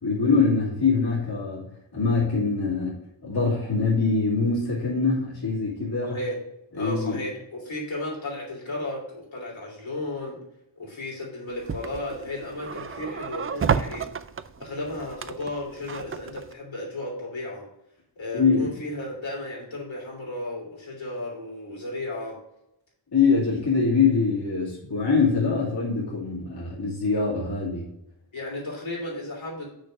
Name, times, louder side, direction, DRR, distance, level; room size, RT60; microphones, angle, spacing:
voice 1, 0.0-1.6 1.9-2.9 3.2-6.2 6.8-7.2 18.3-18.7 23.1-27.8, left 4 dB, 55° left, -6 dB, 2.6 m, -23 dB
voice 2, 6.0-6.4 6.7-10.4 10.8-14.0 14.6-17.6 18.2-22.4 28.3-29.7, left 1 dB, 80° left, -4 dB, 3.2 m, -34 dB
sound 1, 11.5-16.5, right 6 dB, 30° right, 0.4 m, -31 dB
6.4 x 4.2 x 6.4 m, 0.83 s
wide cardioid pair, 95°, 45 cm